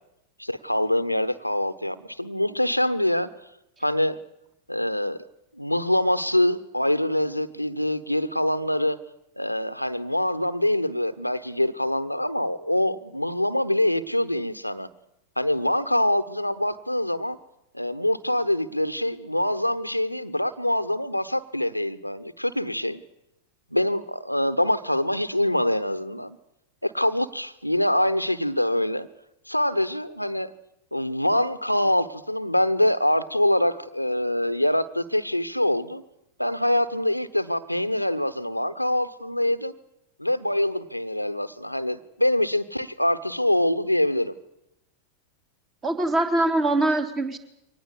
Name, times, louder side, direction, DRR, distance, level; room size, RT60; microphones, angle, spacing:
voice 1, 0.4-3.3 3.8-4.2 4.7-5.2 5.5-9.0 9.4-14.9 15.4-17.4 17.7-23.0 23.7-26.4 26.8-29.1 29.5-30.5 30.9-36.0 36.4-39.7 40.2-44.3, left 1 dB, 90° left, 13 dB, 1.1 m, -24 dB
voice 2, 45.8-47.4, right 2 dB, 25° right, 7 dB, 3.4 m, -23 dB
24.0 x 19.0 x 8.4 m, 0.82 s
figure-of-eight pair, 90°, 0 cm